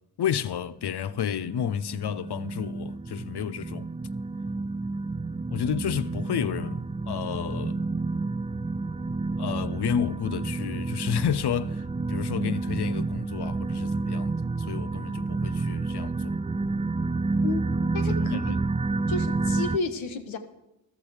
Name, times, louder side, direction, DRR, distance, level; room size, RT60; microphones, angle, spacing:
voice 1, 0.2-3.9 5.5-7.8 9.4-16.4 18.1-18.4, left 9 dB, 60° left, 0.7 m, -31 dB
sound 1, 1.0-19.8, right 3 dB, 15° right, 0.4 m, -30 dB
voice 2, 17.9-18.6 19.1-20.4, left 4 dB, 85° left, 1.3 m, -31 dB
14.0 x 12.0 x 4.9 m
supercardioid pair, 40°, 46 cm